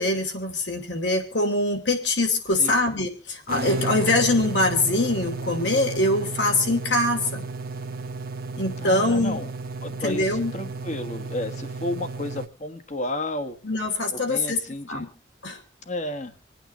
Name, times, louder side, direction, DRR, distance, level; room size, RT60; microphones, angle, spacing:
voice 1, 0.0-7.5 8.5-9.4 10.0-10.5 13.6-14.6 14.9-15.1 15.4-15.6, left 2 dB, 70° left, 5 dB, 2.8 m, -23 dB
sound 1, 3.5-12.5, right 3 dB, 50° right, 0.8 m, -33 dB
voice 2, 8.8-9.5 9.8-13.6 14.1-15.1 15.8-16.3, left 1 dB, 40° left, 8 dB, 1.4 m, -32 dB
27.0 x 9.1 x 2.9 m, 0.31 s
head